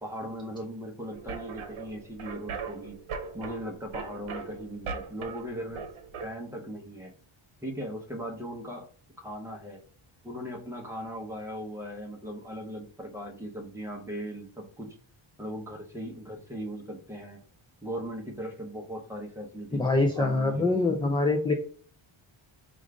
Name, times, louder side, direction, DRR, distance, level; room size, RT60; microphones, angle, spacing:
voice 1, 0.0-3.0 3.3-5.8 6.2-7.1 7.6-8.9 9.2-9.8 10.2-15.0 15.4-17.4 17.8-19.9 20.1-20.9, equal, 5° right, 0 dB, 0.8 m, -38 dB
sound 1, 1.1-6.3, right 5 dB, 75° right, 0.9 m, -39 dB
voice 2, 19.7-21.5, left 2 dB, 10° left, 2 dB, 0.3 m, -24 dB
5.0 x 2.5 x 3.4 m, 0.42 s
wide cardioid pair, 170°, 50 cm